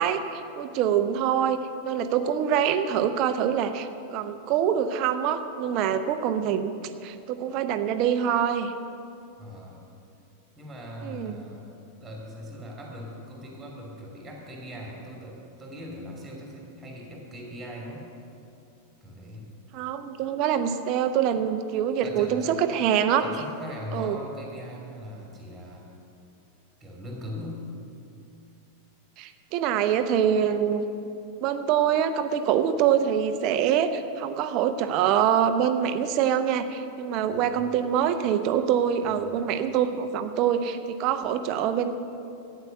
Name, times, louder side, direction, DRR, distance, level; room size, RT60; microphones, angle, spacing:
voice 1, 0.0-1.6 1.8-6.7 7.0-8.7 11.0-11.4 19.7-23.2 23.9-24.2 29.2-30.9 31.4-41.9, right 9 dB, 40° right, 9 dB, 0.8 m, -25 dB
voice 2, 9.4-9.8 10.6-11.7 12.0-18.1 19.0-19.5 22.0-22.6 23.2-25.9 26.8-27.6 37.3-37.7 39.0-39.4, equal, 10° right, -2 dB, 2.5 m, -40 dB
14.0 x 9.4 x 6.7 m, 2.7 s
figure-of-eight pair, 90°, 0 cm